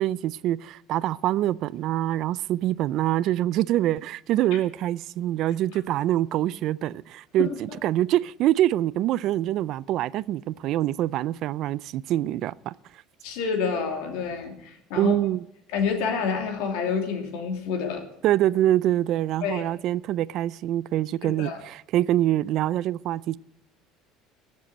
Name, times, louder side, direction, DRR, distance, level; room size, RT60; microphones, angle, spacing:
voice 1, 0.0-12.7 15.0-15.4 18.2-23.4, right 13 dB, 50° right, 0.3 m, -25 dB
voice 2, 13.2-15.2 15.7-18.1 19.4-19.7 21.2-21.6, left 6 dB, 80° left, 2.6 m, -28 dB
20.0 x 7.4 x 4.2 m
cardioid pair, 155°, 0 cm